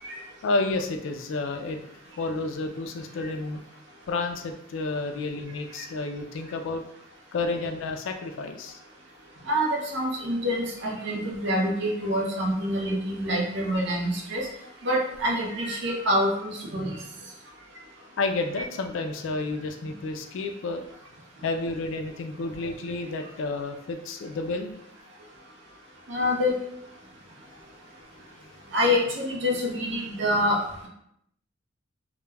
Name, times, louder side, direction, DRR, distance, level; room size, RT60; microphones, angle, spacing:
voice 1, 0.4-1.8 2.2-3.6 4.1-6.8 7.3-8.8 18.2-20.9 21.4-24.7, left 3 dB, 60° left, 6 dB, 0.3 m, -30 dB
voice 2, 9.5-14.5 14.8-17.0 18.6-18.7 26.1-26.6 28.7-30.6, equal, 55° right, -1 dB, 0.5 m, -26 dB
2.2 x 2.1 x 3.2 m, 0.76 s
head